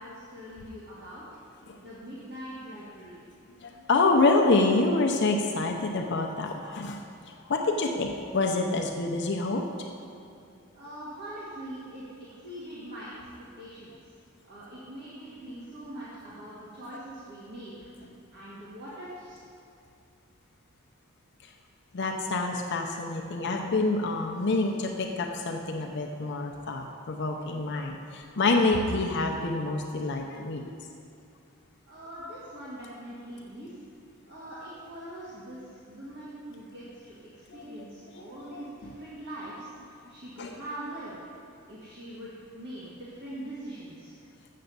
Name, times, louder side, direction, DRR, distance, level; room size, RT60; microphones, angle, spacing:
voice 1, 0.0-1.4 1.8-3.2 10.7-13.3 13.6-13.9 14.4-17.7 18.3-19.4 31.9-33.8 34.3-41.2 41.7-44.1, right 1 dB, 55° right, -9 dB, 1.8 m, -42 dB
voice 2, 3.6-7.0 7.3-9.7 21.4-21.5 21.9-30.9 37.5-37.6 38.1-38.6 40.4-40.5, left 3 dB, 55° left, 2 dB, 0.6 m, -27 dB
7.6 x 6.9 x 6.7 m, 2.4 s
head